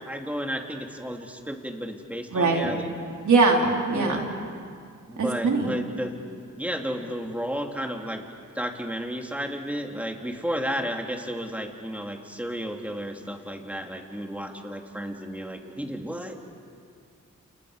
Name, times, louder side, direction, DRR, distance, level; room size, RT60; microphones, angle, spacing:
voice 1, 0.0-3.0 3.9-4.2 5.1-6.1 6.6-8.2 8.5-16.5, equal, 5° right, 2 dB, 2.8 m, -33 dB
voice 2, 2.3-2.7 3.2-4.3 5.4-5.8, right 3 dB, 65° right, 0 dB, 3.8 m, -21 dB
30.0 x 29.0 x 5.0 m, 2.3 s
cardioid pair, 75°, 31 cm